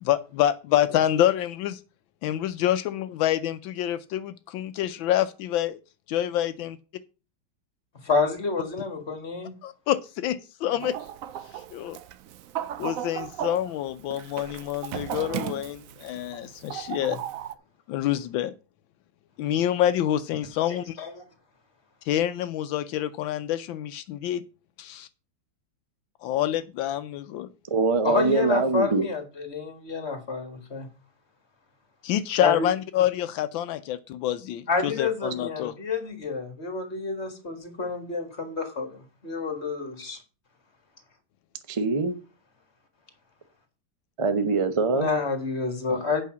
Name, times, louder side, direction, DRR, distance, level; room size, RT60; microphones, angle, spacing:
voice 1, 0.0-1.8 2.2-5.8 6.1-6.8 9.6-11.0 11.7-12.0 12.8-17.2 17.9-18.5 19.4-21.0 22.0-24.4 24.8-25.1 26.2-27.5 32.0-35.7, left 11 dB, 80° left, 1.3 m, -27 dB
voice 2, 8.0-9.5 16.9-17.1 20.7-21.1 28.0-30.9 32.4-32.7 34.7-40.2 44.9-46.2, left 4 dB, 35° left, 1.9 m, -29 dB
Chicken rooster, 10.8-17.5, right 11 dB, 80° right, 0.7 m, -36 dB
voice 3, 27.7-29.0 41.7-42.1 44.2-45.1, right 4 dB, 40° right, 0.4 m, -23 dB
8.4 x 5.7 x 6.0 m
omnidirectional pair, 2.1 m